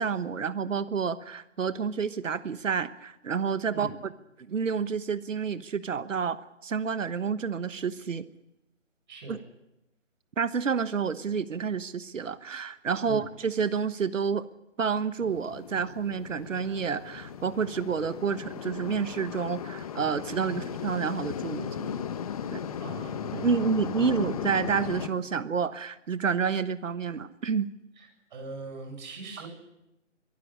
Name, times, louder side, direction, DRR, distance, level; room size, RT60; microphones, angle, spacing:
voice 1, 0.0-3.9 4.4-8.2 9.3-9.4 10.4-14.4 14.8-22.0 22.5-22.6 23.3-27.7, right 6 dB, 80° right, 14 dB, 1.2 m, -29 dB
sound 1, 15.2-25.1, left 8 dB, 30° left, 1.2 m, -36 dB
voice 2, 22.8-24.1 28.0-29.5, right 3 dB, 40° right, 3 dB, 7.7 m, -42 dB
22.5 x 12.5 x 9.8 m, 0.91 s
hypercardioid pair, 160°, 37 cm